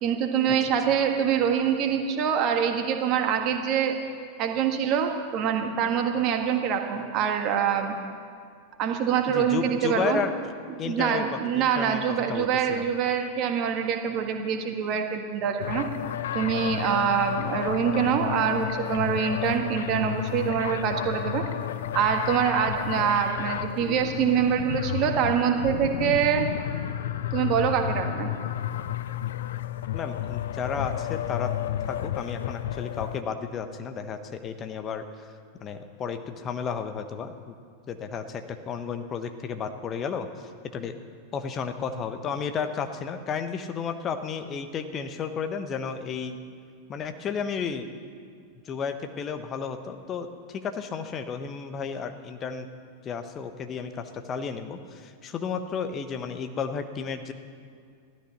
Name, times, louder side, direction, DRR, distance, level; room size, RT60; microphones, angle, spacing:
voice 1, 0.0-4.0 4.4-7.9 8.8-10.2 10.8-15.9 16.3-21.4 21.9-26.5 27.3-28.3, right 8 dB, 40° right, 4 dB, 1.7 m, -25 dB
voice 2, 9.3-10.5 10.8-11.2 11.5-12.0 12.3-12.9 29.9-31.5 31.8-35.0 35.6-37.6 37.9-41.0 41.3-46.4 46.9-47.9 48.6-52.7 53.0-57.3, left 6 dB, 30° left, 8 dB, 1.1 m, -33 dB
sound 1, 15.6-33.2, left 11 dB, 60° left, 0.5 m, -31 dB
15.5 x 13.0 x 6.0 m, 2.2 s
figure-of-eight pair, 90°, 0 cm